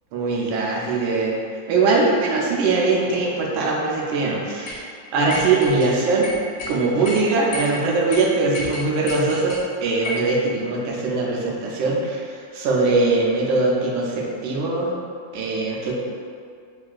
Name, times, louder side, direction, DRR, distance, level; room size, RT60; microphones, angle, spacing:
voice 1, 0.1-1.3 1.7-6.3 6.7-12.2 12.5-14.9 15.3-15.9, right 3 dB, 85° right, -2 dB, 1.4 m, -21 dB
sound 1, 4.7-4.8 5.3-5.9 6.2-6.7 7.0-7.2 7.5-7.7 8.1-8.2 8.5-9.6 10.0-10.3, left 1 dB, 70° left, 1.0 m, -31 dB
3.6 x 2.3 x 2.4 m, 2.3 s
omnidirectional pair, 2.1 m